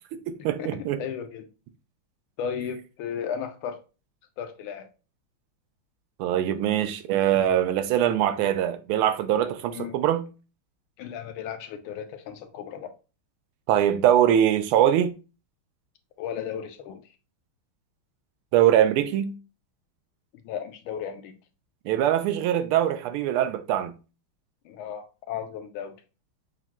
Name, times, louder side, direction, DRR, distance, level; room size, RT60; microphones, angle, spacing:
voice 1, 0.1-1.0 6.2-10.3 13.7-15.1 18.5-19.4 21.8-23.9, right 11 dB, 90° right, 1.5 m, -22 dB
voice 2, 1.0-1.5 2.4-3.8 4.4-4.9 9.7-10.0 11.0-12.9 16.2-17.0 20.4-21.4 24.6-26.0, left 8 dB, 85° left, 1.5 m, -35 dB
5.9 x 2.2 x 2.8 m
omnidirectional pair, 2.3 m